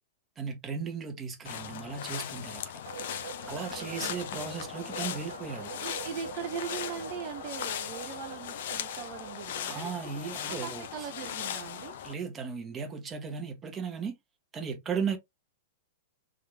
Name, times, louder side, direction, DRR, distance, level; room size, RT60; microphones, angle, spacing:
voice 1, 0.4-2.6 3.5-5.7 9.6-11.1 12.0-14.2 14.5-15.2, right 6 dB, 25° right, 1.3 m, -36 dB
sound 1, 1.5-12.1, left 9 dB, 65° left, 0.6 m, -38 dB
sound 2, 2.9-11.1, right 6 dB, 70° right, 1.1 m, -46 dB
voice 2, 3.8-4.2 5.7-12.0, right 7 dB, 50° right, 0.7 m, -40 dB
3.7 x 3.2 x 3.3 m
hypercardioid pair, 105°, 0 cm